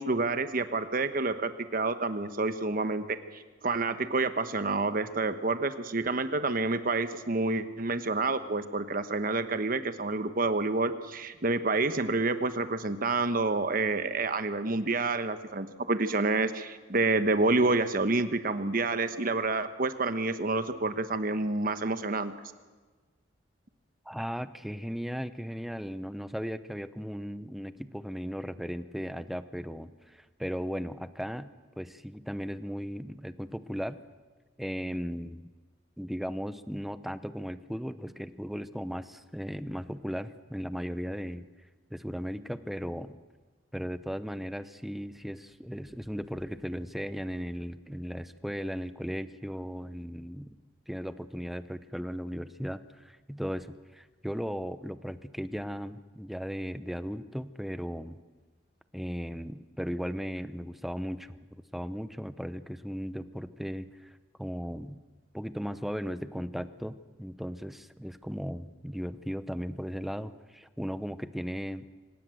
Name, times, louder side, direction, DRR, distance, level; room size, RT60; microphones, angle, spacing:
voice 1, 0.0-22.3, right 3 dB, 50° right, 10 dB, 1.2 m, -28 dB
voice 2, 24.1-34.0 34.6-35.5 36.0-41.5 41.9-43.1 43.7-50.6 50.9-58.2 58.9-61.3 61.7-65.0 65.3-71.9, equal, ahead, 12 dB, 0.7 m, -36 dB
25.5 x 18.5 x 7.8 m, 1.3 s
head